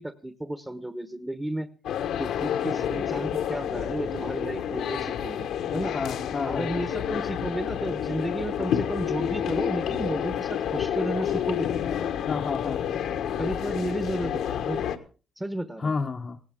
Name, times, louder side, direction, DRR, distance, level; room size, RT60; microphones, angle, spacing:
voice 1, 0.0-1.7 2.2-5.9 6.5-11.7 13.4-14.8 15.4-15.9, right 1 dB, 10° right, 10 dB, 1.1 m, -33 dB
sound 1, 1.8-15.0, left 9 dB, 80° left, 1.3 m, -29 dB
voice 2, 5.9-6.7 12.3-13.0 15.8-16.4, left 4 dB, 40° left, 3 dB, 0.8 m, -31 dB
18.0 x 16.5 x 3.6 m, 0.36 s
cardioid pair, 90°, 0 cm